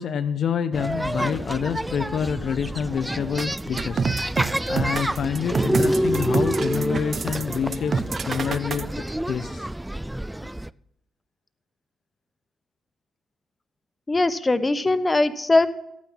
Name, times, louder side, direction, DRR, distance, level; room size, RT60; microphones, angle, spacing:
voice 1, 0.0-4.0 4.7-9.7, left 7 dB, 60° left, 9 dB, 0.6 m, -27 dB
sound 1, 0.7-10.7, right 1 dB, 10° right, 0.4 m, -28 dB
sound 2, 3.4-8.8, right 5 dB, 50° right, 0.8 m, -27 dB
voice 2, 14.1-15.7, left 2 dB, 25° left, 12 dB, 1.0 m, -20 dB
14.5 x 9.2 x 5.7 m, 0.81 s
hypercardioid pair, 45°, 0 cm